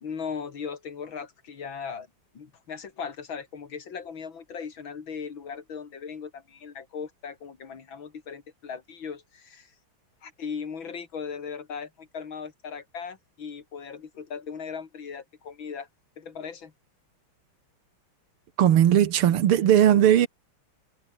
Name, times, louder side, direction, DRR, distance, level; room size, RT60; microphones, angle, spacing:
voice 1, 0.0-2.1 2.3-9.7 10.2-15.9 16.2-16.7, left 6 dB, 65° left, 3.1 m, -38 dB
voice 2, 18.6-20.3, right 10 dB, 85° right, 2.2 m, -18 dB
omnidirectional pair, 2.4 m